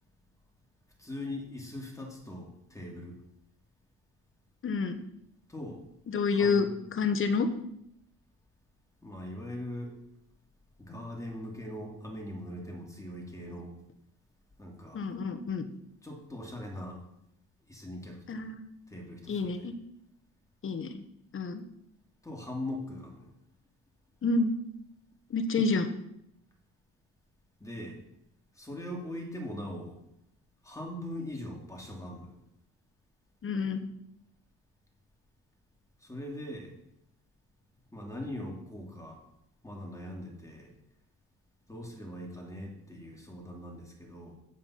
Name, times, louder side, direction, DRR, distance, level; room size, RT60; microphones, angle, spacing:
voice 1, 1.0-3.2 5.5-5.8 6.3-6.7 9.0-9.9 10.8-13.7 14.6-15.1 16.0-17.0 17.7-18.5 18.9-19.7 22.2-23.3 27.6-28.0 28.5-30.0 30.6-32.4 36.0-36.7 37.9-39.2 39.6-40.7 41.7-44.3, left 1 dB, 10° left, 0 dB, 2.7 m, -41 dB
voice 2, 4.6-5.0 6.1-6.7 6.9-7.5 14.9-15.6 18.3-18.6 19.3-19.7 20.6-21.0 21.3-21.6 24.2-24.5 25.3-25.9 33.4-33.9, left 4 dB, 45° left, 8 dB, 1.3 m, -28 dB
8.2 x 7.5 x 5.8 m, 0.77 s
cardioid pair, 90°, 30 cm